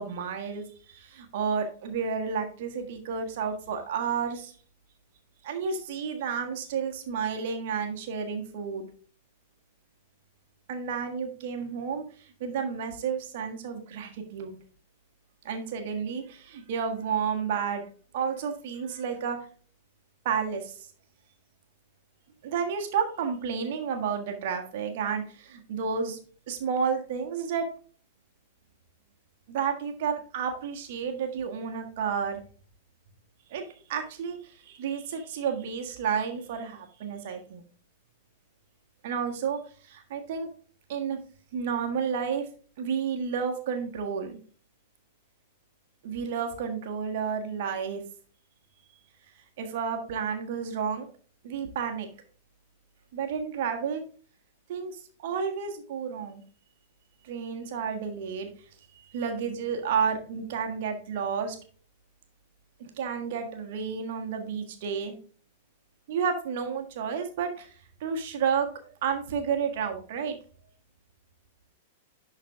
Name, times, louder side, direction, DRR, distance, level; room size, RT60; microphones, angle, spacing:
voice 1, 0.0-4.5 5.4-8.9 10.7-14.5 15.4-17.8 18.1-19.4 20.2-20.9 22.4-26.2 26.5-27.6 29.5-32.4 33.5-33.6 33.9-37.6 39.0-40.5 40.9-41.2 41.5-42.4 42.8-44.4 46.0-48.0 49.6-51.1 51.4-52.1 53.1-54.0 54.7-56.4 57.2-58.5 58.9-61.6 62.8-65.1 66.1-67.7 68.0-68.7 69.0-70.3, right 6 dB, 50° right, 4 dB, 1.5 m, -31 dB
11.5 x 4.0 x 3.5 m, 0.43 s
figure-of-eight pair, 95°, 0 cm